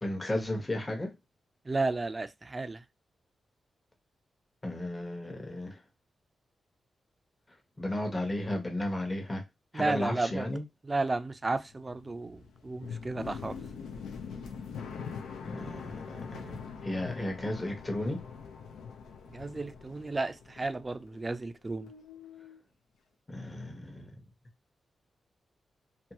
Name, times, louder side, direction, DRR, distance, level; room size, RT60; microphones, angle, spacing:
voice 1, 0.0-1.1 4.6-5.8 7.8-9.4 9.7-10.6 15.4-18.2 23.3-24.2, left 1 dB, 25° left, 0.9 m, -34 dB
voice 2, 1.7-2.8 9.7-10.5 10.8-13.6 19.3-21.9, right 3 dB, 35° right, 0.4 m, -33 dB
sound 1, 11.4-21.5 21.7-22.6, left 6 dB, 90° left, 0.4 m, -43 dB
2.6 x 2.3 x 2.9 m
cardioid pair, 50°, 0 cm